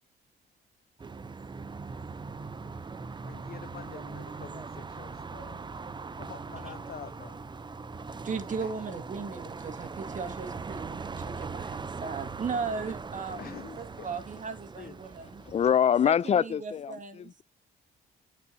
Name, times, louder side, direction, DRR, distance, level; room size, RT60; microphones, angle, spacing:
sound 1, 1.0-15.7, right 4 dB, 20° right, 0.6 m, -40 dB
voice 1, 3.2-5.6 6.1-7.4 8.6-8.8 9.4-9.6 13.4-13.7 14.0-14.5 14.7-15.0, left 8 dB, 50° left, 0.9 m, -47 dB
voice 2, 8.2-15.4 16.0-17.3, right 5 dB, 40° right, 1.9 m, -37 dB
voice 3, 15.5-16.9, left 8 dB, 35° left, 0.3 m, -24 dB
9.4 x 6.2 x 2.8 m
cardioid pair, 90°, 20 cm